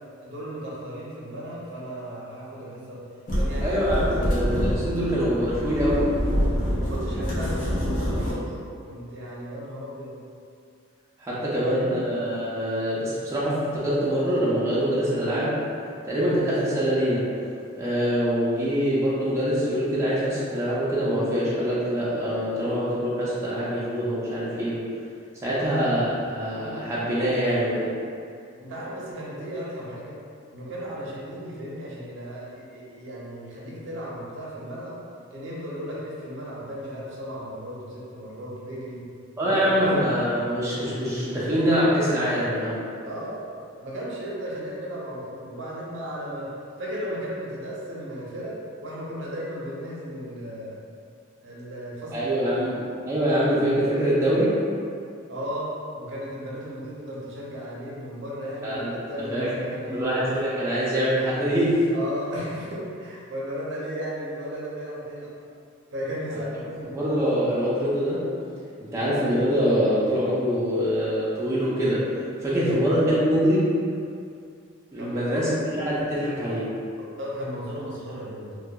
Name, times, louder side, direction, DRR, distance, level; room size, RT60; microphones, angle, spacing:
voice 1, 0.2-3.0 3.3-3.8 4.1-4.3 6.8-8.5 8.9-10.1 11.3-12.0 25.5-25.8 28.6-30.2 30.5-35.0 35.3-39.0 39.4-40.0 43.0-43.4 43.8-46.5 46.8-48.6 48.8-50.8 51.4-52.6 55.3-58.8 59.1-60.1 61.9-65.3 65.9-67.0 72.6-72.8 75.0-75.6 77.0-78.6, equal, 65° right, -5 dB, 0.6 m, -35 dB
sound 1, 3.3-8.3, equal, 40° left, 0.6 m, -26 dB
voice 2, 3.6-6.1 11.2-15.6 16.0-17.3 17.7-24.9 25.4-28.0 39.4-42.8 52.1-52.7 53.1-54.6 58.6-58.9 59.3-59.5 59.9-61.8 66.3-66.4 66.9-68.3 68.8-72.1 72.4-73.7 74.9-76.8, equal, 15° right, -9 dB, 0.4 m, -24 dB
2.2 x 2.2 x 2.7 m, 2.3 s
head